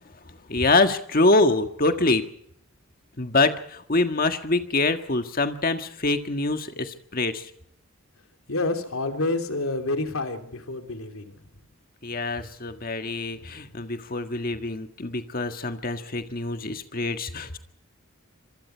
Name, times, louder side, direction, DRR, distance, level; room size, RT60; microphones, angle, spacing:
voice 1, 0.5-2.3 3.2-7.5 12.0-17.6, left 2 dB, 45° left, 7 dB, 1.7 m, -25 dB
voice 2, 8.5-11.3 13.3-13.5, left 2 dB, 85° left, 5 dB, 3.1 m, -28 dB
26.0 x 23.5 x 4.6 m, 0.69 s
head